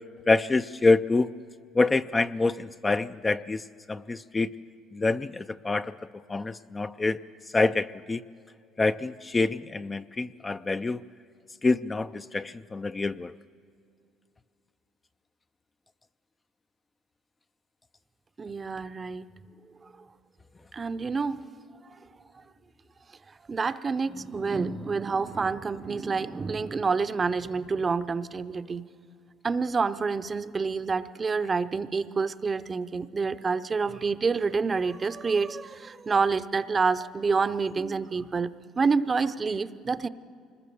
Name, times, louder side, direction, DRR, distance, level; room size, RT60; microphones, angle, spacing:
voice 1, 0.3-1.3 1.7-3.6 3.9-4.5 4.9-6.0 6.3-7.2 7.5-8.2 8.8-11.0 11.6-13.3, left 3 dB, 20° left, 11 dB, 0.4 m, -26 dB
voice 2, 18.4-19.2 20.7-21.4 21.8-22.0 23.5-28.8 29.4-38.5 38.8-40.1, right 4 dB, 30° right, 13 dB, 0.7 m, -28 dB
25.0 x 20.5 x 7.0 m, 2.4 s
cardioid pair, 100°, 0 cm